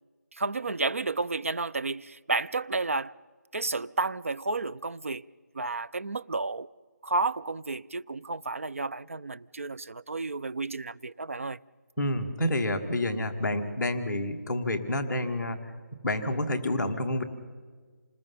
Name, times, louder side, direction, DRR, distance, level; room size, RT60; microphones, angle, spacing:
voice 1, 0.3-3.1 3.5-5.2 5.5-6.7 7.0-11.6, right 3 dB, 50° right, 0.6 m, -31 dB
voice 2, 12.0-15.7 16.0-17.2, left 1 dB, 5° left, 1.4 m, -29 dB
28.0 x 20.0 x 5.6 m
figure-of-eight pair, 180°, 9 cm